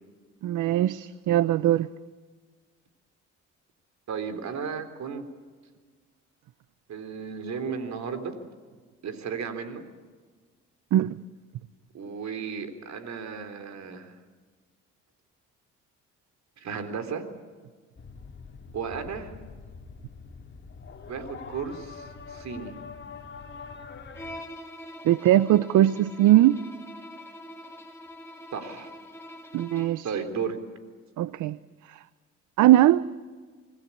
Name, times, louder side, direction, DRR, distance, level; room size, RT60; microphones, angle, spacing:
voice 1, 0.4-1.9 10.9-11.2 25.0-26.6 29.5-30.2 31.2-31.6 32.6-33.0, right 13 dB, 80° right, 0.7 m, -20 dB
voice 2, 4.1-5.3 6.9-8.4 9.0-9.8 11.9-14.2 16.6-17.3 18.7-19.3 21.1-22.8 28.5-28.9 30.0-30.6, right 6 dB, 65° right, 3.7 m, -34 dB
sound 1, 18.0-24.4, left 5 dB, 40° left, 2.2 m, -44 dB
Bowed string instrument, 24.2-30.1, left 1 dB, 10° left, 4.4 m, -44 dB
26.0 x 19.5 x 8.5 m
cardioid pair, 90°, 30 cm